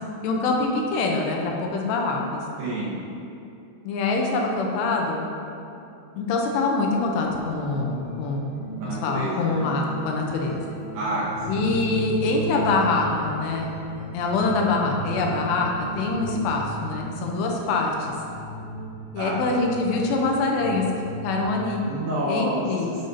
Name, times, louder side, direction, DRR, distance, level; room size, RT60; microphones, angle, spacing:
voice 1, 0.2-2.4 3.9-5.2 6.2-8.5 8.8-10.6 11.5-13.7 14.1-18.1 19.1-20.9 21.2-21.8 22.3-23.1, left 3 dB, 85° left, 0 dB, 2.8 m, -24 dB
voice 2, 2.6-3.0 8.8-9.6 10.9-11.7 19.2-19.4 21.8-23.1, right 1 dB, 75° right, -7 dB, 3.3 m, -29 dB
sound 1, 6.8-21.4, right 2 dB, 50° left, 1.9 m, -36 dB
12.0 x 5.1 x 2.7 m, 2.7 s
omnidirectional pair, 5.0 m